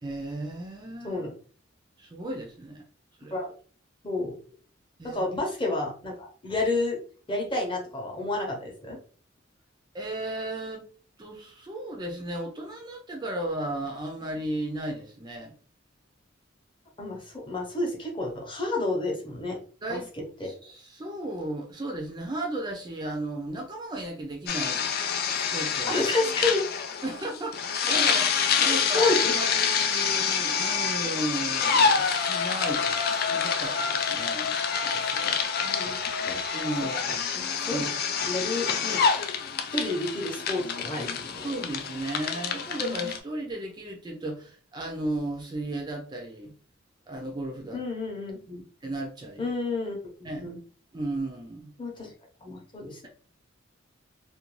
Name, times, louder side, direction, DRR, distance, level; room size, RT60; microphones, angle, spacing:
voice 1, 0.0-1.2 2.0-2.8 3.2-3.4 5.0-5.2 9.9-10.8 11.2-15.5 19.8-20.1 20.4-24.9 25.3-26.0 27.0-28.3 28.6-34.5 34.8-35.4 36.5-37.2 37.7-37.9 41.4-46.5 47.1-47.8 48.8-49.5 50.2-50.5 50.9-51.7, right 1 dB, 20° right, 1 dB, 0.4 m, -35 dB
voice 2, 5.0-7.0 7.3-9.0 17.0-19.6 19.9-20.0 20.4-20.5 25.9-26.6 28.1-28.3 28.9-29.3 35.6-36.0 36.3-36.4 37.0-37.9 38.2-39.0 39.7-41.5 47.7-48.6 49.4-50.6 51.8-52.1 52.4-53.1, left 2 dB, 25° left, 0 dB, 0.7 m, -30 dB
sound 1, 24.5-43.2, left 6 dB, 50° left, 0.3 m, -27 dB
2.5 x 2.2 x 3.0 m, 0.41 s
head